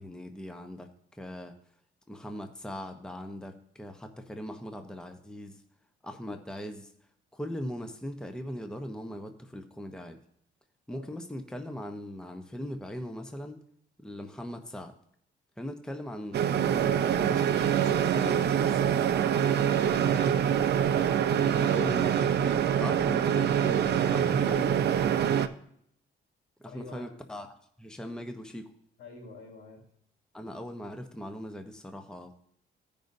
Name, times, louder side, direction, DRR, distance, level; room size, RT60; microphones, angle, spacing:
voice 1, 0.0-1.6 2.1-5.6 6.0-6.9 7.3-10.2 10.9-13.6 14.0-14.9 15.6-19.0 21.4-24.8 26.6-28.7 30.3-32.4, equal, 5° left, 6 dB, 0.8 m, -40 dB
sound 1, 16.3-25.5, right 9 dB, 55° right, 0.6 m, -25 dB
voice 2, 19.2-20.1 26.7-27.1 29.0-29.8, left 3 dB, 85° left, 0 dB, 3.5 m, -47 dB
15.5 x 5.3 x 2.7 m, 0.69 s
cardioid pair, 90°, 20 cm